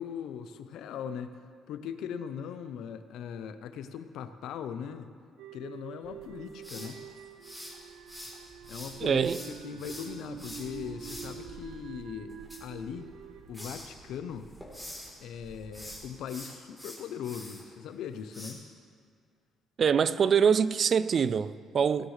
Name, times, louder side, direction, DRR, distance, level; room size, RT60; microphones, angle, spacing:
voice 1, 0.0-5.1 5.5-7.0 8.7-13.1 13.5-14.5 15.2-18.6, left 8 dB, 80° left, 0.7 m, -40 dB
sound 1, 5.4-14.6, right 9 dB, 85° right, 0.7 m, -47 dB
sound 2, 6.0-16.0, right 3 dB, 65° right, 1.7 m, -54 dB
sound 3, 6.6-8.3 8.6-11.3 12.3-13.2 13.5-13.9 14.3-15.1 15.6-17.6 18.3-18.5, left 1 dB, 5° right, 3.5 m, -44 dB
voice 2, 9.0-9.4 19.8-22.1, right 7 dB, 45° right, 0.3 m, -24 dB
18.0 x 12.5 x 3.3 m
cardioid pair, 120°, 0 cm